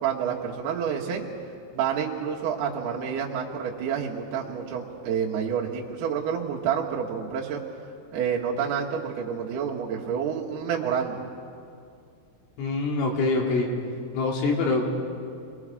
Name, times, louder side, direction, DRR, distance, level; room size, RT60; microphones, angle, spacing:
voice 1, 0.0-1.3 1.7-7.6 8.1-11.2, right 7 dB, 65° right, -3 dB, 3.4 m, -28 dB
voice 2, 12.6-13.7 14.1-14.9, left 3 dB, 75° left, 0 dB, 5.1 m, -24 dB
29.0 x 22.0 x 4.9 m, 2.3 s
omnidirectional pair, 5.7 m